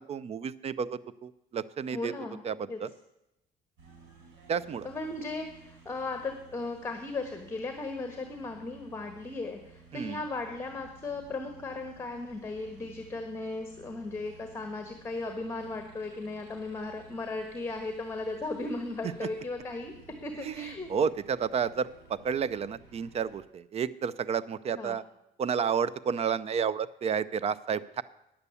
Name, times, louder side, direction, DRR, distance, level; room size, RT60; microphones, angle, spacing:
voice 1, 0.1-2.1 2.4-2.9 4.5-4.9 9.9-10.2 19.2-19.3 20.4-25.0 25.4-28.0, right 7 dB, 40° right, 19 dB, 0.4 m, -31 dB
voice 2, 1.9-2.4 2.7-2.8 4.8-19.9 20.2-20.9 24.7-25.0, left 3 dB, 15° left, 5 dB, 1.2 m, -36 dB
sound 1, 3.8-23.4, right 4 dB, 85° right, 4.4 m, -55 dB
9.9 x 8.2 x 6.9 m, 0.88 s
cardioid pair, 110°, 17 cm